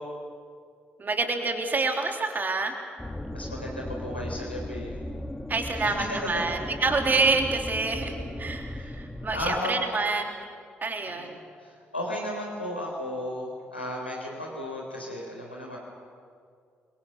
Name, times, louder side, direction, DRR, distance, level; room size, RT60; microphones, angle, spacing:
voice 1, 1.0-2.7 5.5-11.4, right 3 dB, 35° right, 4 dB, 3.3 m, -27 dB
sound 1, 3.0-9.6, left 1 dB, 10° left, 1.5 m, -36 dB
voice 2, 3.3-4.9 5.8-6.5 8.0-8.4 8.8-9.0 9.3-9.8 11.0-11.3 11.6-15.8, left 1 dB, 90° left, -2 dB, 3.9 m, -34 dB
28.5 x 24.0 x 6.6 m, 2.2 s
figure-of-eight pair, 40°, 6 cm